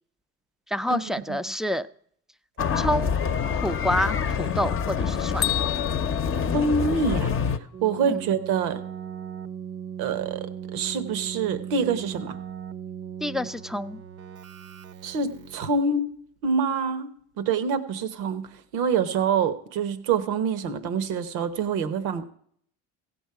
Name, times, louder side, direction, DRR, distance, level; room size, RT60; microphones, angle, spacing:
voice 1, 0.7-1.9 2.8-3.2 3.6-5.4 8.1-8.2 13.2-14.0, equal, ahead, 11 dB, 0.4 m, -28 dB
sound 1, 2.6-7.6, left 7 dB, 45° left, 0.7 m, -26 dB
Bell, 5.4-7.4, left 15 dB, 75° left, 0.6 m, -32 dB
voice 2, 6.5-7.3 7.8-8.8 10.0-10.4 10.7-12.4 15.0-16.1 16.4-17.1 17.4-18.5 18.7-22.2, right 5 dB, 85° right, 11 dB, 0.9 m, -26 dB
Keyboard (musical), 7.7-15.8, right 8 dB, 55° right, 0.6 m, -38 dB
16.0 x 7.2 x 4.7 m, 0.64 s
supercardioid pair, 75°, 31 cm